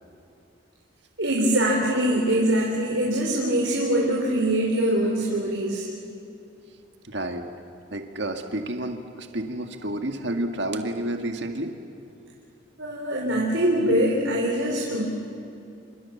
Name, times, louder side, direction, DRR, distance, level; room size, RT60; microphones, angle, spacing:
voice 1, 1.2-5.9 12.8-15.0, right 1 dB, 80° right, -2 dB, 4.2 m, -23 dB
voice 2, 7.0-7.5 7.9-11.7, right 1 dB, 65° right, 5 dB, 2.0 m, -30 dB
28.5 x 27.0 x 7.3 m, 2.7 s
head